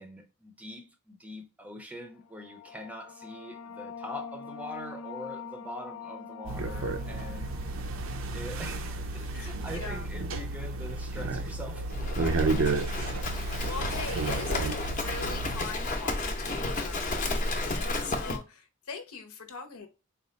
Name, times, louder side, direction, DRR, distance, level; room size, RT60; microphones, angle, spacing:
voice 1, 0.0-7.5 8.3-13.0, equal, 5° right, 0.5 m, -43 dB
sound 1, 2.2-9.5, left 6 dB, 65° left, 0.4 m, -45 dB
sound 2, 6.5-15.6, right 3 dB, 60° right, 0.5 m, -32 dB
voice 2, 9.1-10.1 13.2-19.9, left 5 dB, 80° left, 0.9 m, -41 dB
Livestock farm animals working animals, 11.9-18.4, left 2 dB, 35° left, 0.7 m, -32 dB
4.1 x 2.4 x 3.9 m
head